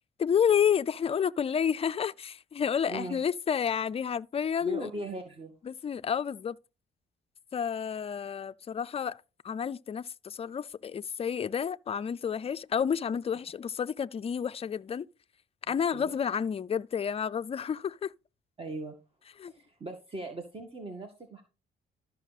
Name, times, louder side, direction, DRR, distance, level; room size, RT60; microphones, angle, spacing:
voice 1, 0.2-4.9 5.6-6.6 7.5-15.1 15.7-18.1 19.4-19.5, left 7 dB, 30° left, 0.4 m, -30 dB
voice 2, 2.9-3.2 4.6-5.5 15.7-16.1 18.6-19.0 19.4-21.4, right 2 dB, 30° right, 1.8 m, -39 dB
13.5 x 6.1 x 4.1 m
cardioid pair, 90°, 20 cm